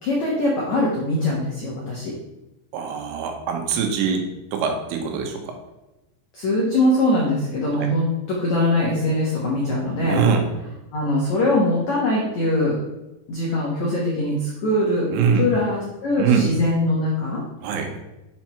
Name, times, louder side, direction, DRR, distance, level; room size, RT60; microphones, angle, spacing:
voice 1, 0.0-2.1 6.3-10.2 10.9-12.8 13.3-15.1 15.4-17.4, left 1 dB, 85° left, -3 dB, 1.6 m, -22 dB
voice 2, 2.7-5.6 7.7-7.9 10.0-10.5 15.1-15.5 16.2-16.5 17.6-17.9, right 6 dB, 80° right, 3 dB, 3.6 m, -23 dB
8.4 x 4.6 x 5.6 m, 0.98 s
omnidirectional pair, 5.7 m